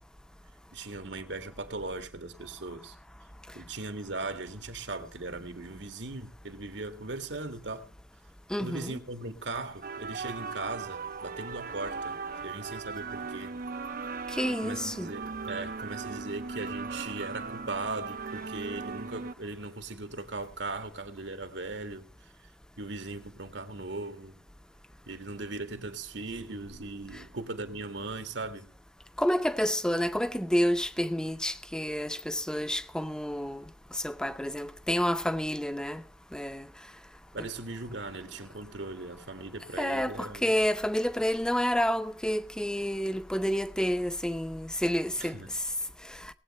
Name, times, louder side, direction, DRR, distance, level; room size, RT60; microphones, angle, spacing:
voice 1, 0.7-3.0 3.5-7.9 8.6-13.6 14.6-22.5 22.8-24.4 25.1-28.7 37.3-40.5 45.2-45.5, right 3 dB, 80° right, 1.9 m, -39 dB
voice 2, 8.5-8.9 14.3-15.1 29.2-33.6 33.9-36.0 36.3-36.7 39.8-45.4, equal, 5° left, 0.6 m, -29 dB
sound 1, 9.8-19.3, right 4 dB, 50° right, 0.6 m, -38 dB
19.5 x 8.5 x 4.2 m
head